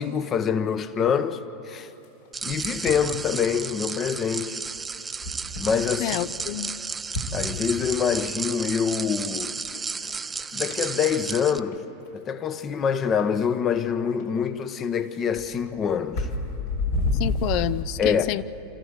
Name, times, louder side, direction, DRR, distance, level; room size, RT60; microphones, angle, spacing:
voice 1, 0.0-1.9 2.4-4.6 5.6-6.2 7.3-9.6 10.5-11.8 12.1-16.3 18.0-18.3, left 7 dB, 35° left, 1.0 m, -25 dB
sound 1, 2.0-3.2 4.8-4.9 5.2-5.8 6.1-6.5 7.0-8.2 8.7-8.8 9.4-9.5 9.7-10.1 10.4-11.5 11.7-11.8 12.0-12.1 12.4-12.9 13.2-13.3 13.7-13.8 14.2-14.3 14.8-17.8, left 2 dB, 75° left, 4.6 m, -30 dB
sound 2, 2.3-11.6, right 5 dB, 20° right, 0.6 m, -33 dB
voice 2, 6.0-6.8 17.2-18.4, left 14 dB, 55° left, 0.5 m, -28 dB
27.5 x 14.5 x 8.1 m
hypercardioid pair, 95°, 0 cm